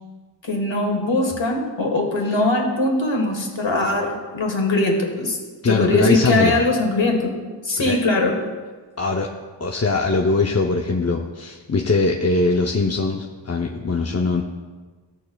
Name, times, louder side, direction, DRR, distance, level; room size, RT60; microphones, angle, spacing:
voice 1, 0.5-5.4 5.6-7.4 7.6-8.4, left 2 dB, 75° left, 2 dB, 1.6 m, -21 dB
voice 2, 5.6-6.6 7.8-8.0 9.0-9.3 9.6-14.4, left 3 dB, 35° left, 1 dB, 0.6 m, -21 dB
16.0 x 6.4 x 2.3 m, 1.4 s
wide cardioid pair, 60°, 46 cm